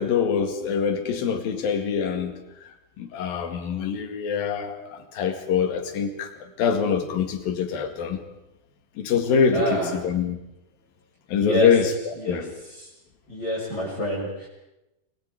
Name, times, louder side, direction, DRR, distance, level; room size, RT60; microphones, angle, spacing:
voice 1, 0.0-2.4 3.0-6.3 6.6-8.2 9.0-10.4 11.3-12.5, left 6 dB, 75° left, 6 dB, 3.8 m, -24 dB
voice 2, 9.5-9.9 11.3-12.9 13.3-14.5, equal, 25° left, -5 dB, 7.2 m, -28 dB
30.0 x 21.5 x 4.9 m, 0.92 s
omnidirectional pair, 4.2 m